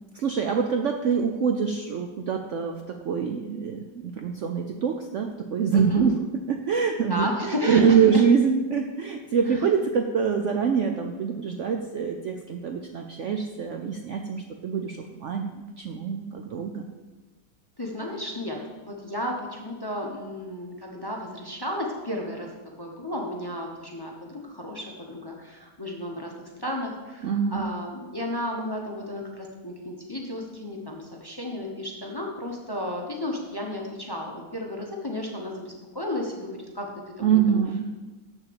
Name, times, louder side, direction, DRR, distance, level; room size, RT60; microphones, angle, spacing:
voice 1, 0.1-6.2 6.5-16.8 27.2-27.7 37.2-37.9, right 6 dB, 85° right, 4 dB, 0.6 m, -25 dB
voice 2, 5.7-6.0 7.1-8.2 9.5-9.7 17.8-22.5 22.8-37.6, left 1 dB, 20° left, 0 dB, 0.7 m, -33 dB
7.3 x 6.7 x 6.9 m, 1.3 s
omnidirectional pair, 2.0 m